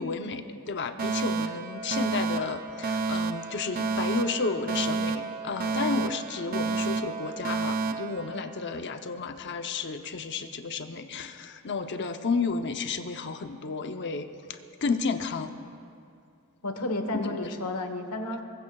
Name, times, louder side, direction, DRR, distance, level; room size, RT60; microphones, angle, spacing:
voice 1, 0.0-15.5 17.1-17.3, left 4 dB, 55° left, 7 dB, 0.8 m, -32 dB
Alarm, 1.0-9.0, right 4 dB, 40° right, 0.6 m, -30 dB
voice 2, 16.6-18.4, left 2 dB, 85° left, 6 dB, 1.3 m, -31 dB
23.5 x 20.5 x 2.4 m, 2.4 s
head